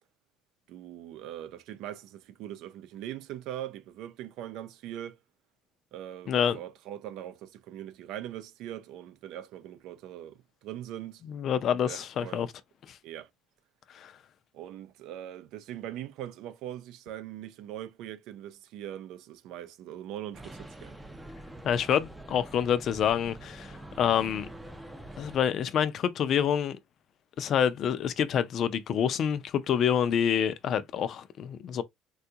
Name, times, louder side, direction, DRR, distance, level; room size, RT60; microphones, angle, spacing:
voice 1, 0.7-5.2 5.9-11.2 11.7-12.5 13.0-13.3 14.5-21.0, right 12 dB, 75° right, 0.5 m, -41 dB
voice 2, 6.3-6.6 11.3-12.5 12.9-13.0 13.9-14.1 21.6-24.5 25.2-26.8 27.4-31.8, left 8 dB, 50° left, 0.4 m, -27 dB
sound 1, 20.3-25.4, right 1 dB, 5° right, 0.4 m, -45 dB
3.6 x 2.3 x 2.7 m
cardioid pair, 130°, 0 cm